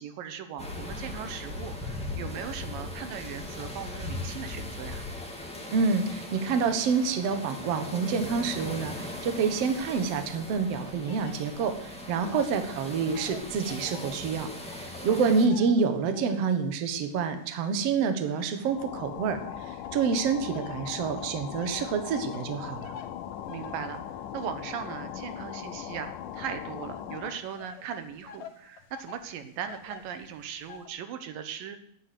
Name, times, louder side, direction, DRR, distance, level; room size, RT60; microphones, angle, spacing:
voice 1, 0.0-5.0 12.3-12.4 15.1-15.4 23.5-31.8, right 8 dB, 85° right, 9 dB, 2.9 m, -39 dB
sound 1, 0.6-15.5, left 2 dB, ahead, 1.7 m, -39 dB
voice 2, 5.7-22.9, right 5 dB, 55° right, 8 dB, 2.1 m, -28 dB
sound 2, 11.0-12.6 12.9-16.6 17.1-19.2 19.8-30.9, left 6 dB, 60° left, 2.4 m, -49 dB
sound 3, 18.6-27.5, left 10 dB, 75° left, 2.4 m, -39 dB
11.5 x 9.5 x 9.5 m, 0.68 s
omnidirectional pair, 3.9 m